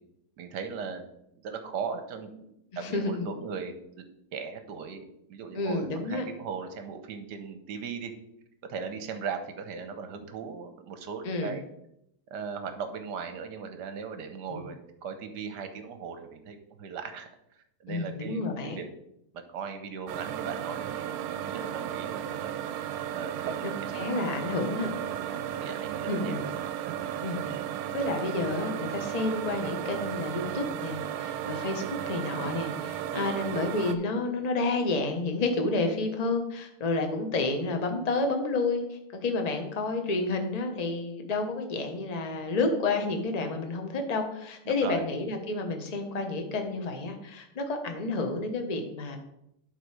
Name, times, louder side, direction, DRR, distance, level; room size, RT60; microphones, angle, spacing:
voice 1, 0.4-1.1 1.4-2.3 2.8-4.0 4.3-8.1 8.6-11.6 12.3-17.3 17.8-18.9 19.3-22.5 23.1-24.0 25.1-26.5 33.1-33.4 44.7-45.0, right 6 dB, 60° right, 8 dB, 1.2 m, -38 dB
voice 2, 2.7-3.3 5.5-6.2 11.2-11.5 14.5-14.6 17.9-18.8 23.6-24.9 26.1-26.4 27.2-27.4 27.9-49.2, left 3 dB, 45° left, 4 dB, 0.5 m, -30 dB
sound 1, 20.1-33.9, right 10 dB, 80° right, 1.4 m, -34 dB
11.5 x 3.9 x 4.8 m, 0.78 s
omnidirectional pair, 2.4 m